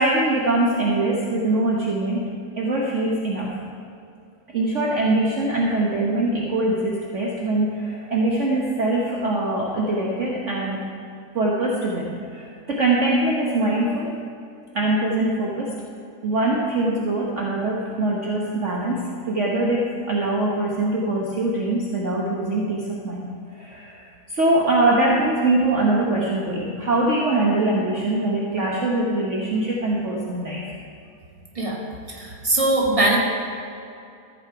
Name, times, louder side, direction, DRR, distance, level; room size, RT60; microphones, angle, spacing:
voice 1, 0.0-2.3 2.6-3.6 4.5-10.8 11.3-14.2 14.7-15.7 16.2-24.0 24.3-30.8, right 2 dB, 50° right, -3 dB, 1.4 m, -23 dB
voice 2, 32.1-33.2, right 2 dB, 20° right, -2 dB, 1.8 m, -21 dB
14.5 x 8.0 x 4.7 m, 2.5 s
omnidirectional pair, 1.8 m